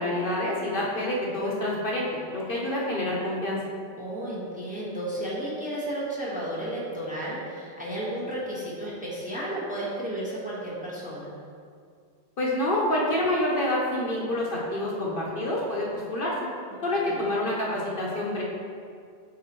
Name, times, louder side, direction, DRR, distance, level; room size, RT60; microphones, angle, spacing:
voice 1, 0.0-3.6 12.4-16.3 16.8-18.4, left 1 dB, 55° left, -4 dB, 1.0 m, -27 dB
voice 2, 4.0-11.3 17.0-17.2, right 1 dB, 5° right, -7 dB, 1.1 m, -33 dB
7.8 x 4.0 x 3.0 m, 2.2 s
omnidirectional pair, 1.1 m